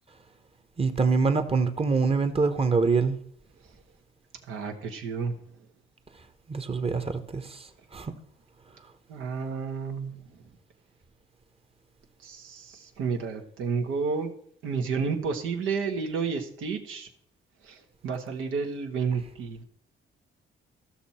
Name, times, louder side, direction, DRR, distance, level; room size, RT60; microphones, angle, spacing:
voice 1, 0.8-3.2 6.5-7.5 7.9-8.1, right 4 dB, 30° right, 9 dB, 1.1 m, -24 dB
voice 2, 4.5-5.4 9.1-10.1 12.2-14.3 14.6-17.1 17.6-19.6, right 5 dB, 85° right, 4 dB, 1.4 m, -31 dB
14.0 x 6.1 x 4.3 m, 0.65 s
cardioid pair, 90°, 20 cm